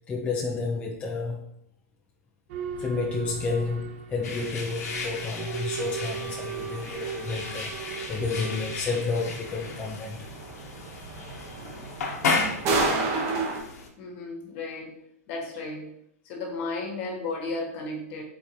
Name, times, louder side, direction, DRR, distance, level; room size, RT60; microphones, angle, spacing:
voice 1, 0.1-1.4 2.8-7.7 8.1-10.2 11.3-11.5, left 4 dB, 15° left, 0.4 m, -31 dB
Boat Water vehicle / Alarm, 2.5-13.2, right 8 dB, 50° right, 0.4 m, -39 dB
sound 1, 4.2-13.9, left 4 dB, 75° left, 0.9 m, -34 dB
sound 2, 6.2-13.6, right 3 dB, 35° right, 0.9 m, -32 dB
voice 2, 14.0-15.0 15.3-15.9 16.2-18.2, left 3 dB, 45° left, 1.3 m, -34 dB
4.1 x 3.7 x 3.0 m
hypercardioid pair, 135°, 9 cm